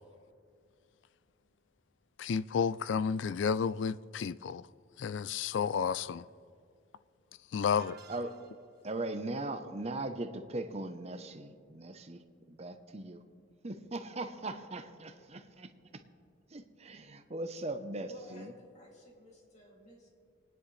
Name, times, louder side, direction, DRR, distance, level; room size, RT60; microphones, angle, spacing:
voice 1, 2.2-4.7 5.0-6.3 7.5-8.0, left 6 dB, 65° left, 0.3 m, -31 dB
voice 2, 7.7-8.3 8.8-12.2 12.5-13.2 13.6-15.7 16.5-18.6, right 2 dB, 35° right, 0.8 m, -39 dB
sound 1, 7.8-8.8, right 7 dB, 55° right, 1.4 m, -55 dB
voice 3, 18.1-20.1, left 1 dB, 35° left, 2.7 m, -53 dB
29.5 x 10.0 x 3.3 m
head